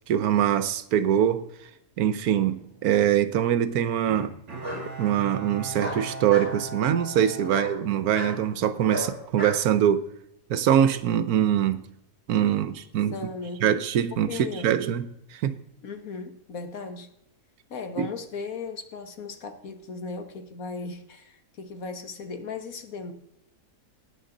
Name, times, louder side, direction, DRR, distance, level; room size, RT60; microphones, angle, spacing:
voice 1, 0.1-1.4 2.0-4.3 5.0-10.0 10.5-11.8 12.3-13.2 13.6-15.6 18.0-18.1, right 10 dB, 75° right, 1.2 m, -23 dB
Bark, 2.4-3.1 4.6-4.8 5.8-6.5 7.5-7.7 8.1-8.3 8.9-9.6, equal, 15° right, 5.0 m, -33 dB
Bowed string instrument, 4.1-8.6 9.0-9.1, right 2 dB, 45° right, 2.4 m, -39 dB
voice 2, 13.1-13.6 14.3-14.8 15.8-17.1 17.7-23.1, left 4 dB, 65° left, 1.6 m, -37 dB
17.5 x 9.7 x 3.9 m
omnidirectional pair, 1.7 m